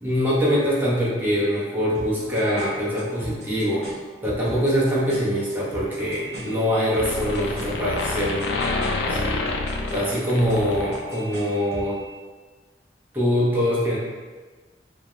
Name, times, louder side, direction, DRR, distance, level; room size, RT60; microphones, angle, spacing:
voice 1, 0.0-3.9 4.2-8.5 9.1-9.3 9.9-12.0 13.1-14.0, equal, 10° right, -8 dB, 0.6 m, -23 dB
sound 1, 1.9-11.9, right 1 dB, 70° right, 0.8 m, -41 dB
sound 2, 6.0-6.7 7.0-11.4, left 2 dB, 80° left, 0.3 m, -28 dB
2.4 x 2.0 x 2.9 m, 1.4 s
head